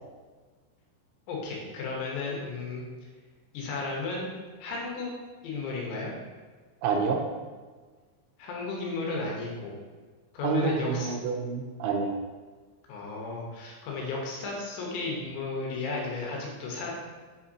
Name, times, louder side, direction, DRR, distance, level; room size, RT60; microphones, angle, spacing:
voice 1, 1.3-2.8 3.5-4.3 4.6-5.1 5.4-6.1 8.4-9.7 10.3-11.1 12.9-16.9, left 3 dB, 75° left, -2 dB, 3.2 m, -34 dB
voice 2, 6.8-7.2 10.4-12.2, right 5 dB, 80° right, 2 dB, 3.0 m, -28 dB
7.3 x 5.6 x 2.7 m, 1.4 s
omnidirectional pair, 5.6 m